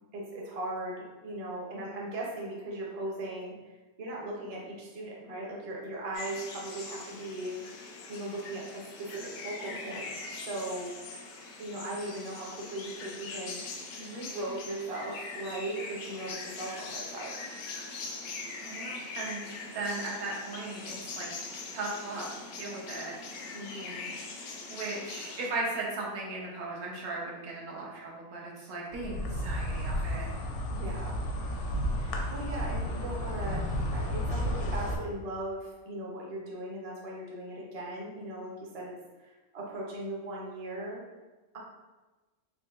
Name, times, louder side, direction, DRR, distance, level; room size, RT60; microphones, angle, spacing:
voice 1, 0.1-3.5 4.0-7.6 8.1-10.9 11.6-13.6 13.9-17.4 23.5-24.1 30.7-31.2 32.0-39.0 39.2-41.0, right 1 dB, 45° right, -3 dB, 0.4 m, -38 dB
sound 1, 6.1-25.5, left 3 dB, 85° left, 1.1 m, -42 dB
voice 2, 9.6-10.0 18.6-21.3 21.7-22.3 22.6-23.1 24.7-30.4, right 2 dB, 80° right, -3 dB, 1.2 m, -37 dB
Insect, 28.9-35.0, equal, 65° left, 0.7 m, -32 dB
3.9 x 2.6 x 2.3 m, 1.2 s
omnidirectional pair, 1.5 m